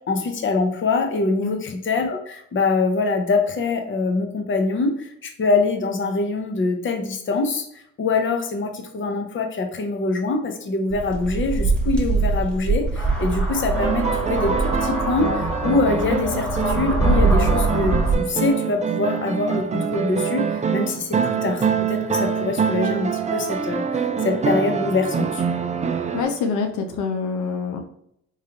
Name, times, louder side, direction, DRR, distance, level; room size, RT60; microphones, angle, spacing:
voice 1, 0.1-7.7 8.0-25.4, left 3 dB, 40° left, 5 dB, 0.8 m, -24 dB
sound 1, 10.9-18.2, right 3 dB, 5° left, 1.0 m, -23 dB
sound 2, 13.7-26.2, right 6 dB, 25° right, 0.4 m, -25 dB
voice 2, 26.1-27.8, left 4 dB, 80° left, 4 dB, 0.7 m, -25 dB
3.7 x 3.2 x 2.9 m, 0.72 s
cardioid pair, 90°, 30 cm